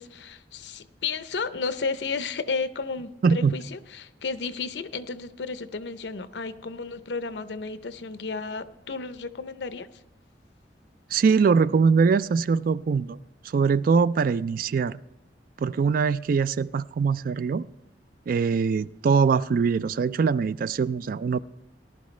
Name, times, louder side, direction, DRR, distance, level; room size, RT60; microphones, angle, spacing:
voice 1, 0.0-9.9, left 4 dB, 75° left, 0.6 m, -33 dB
voice 2, 3.2-3.5 11.1-13.2 13.5-15.0 15.6-17.7 18.3-21.4, right 5 dB, 55° right, 0.3 m, -22 dB
18.0 x 11.5 x 3.2 m
head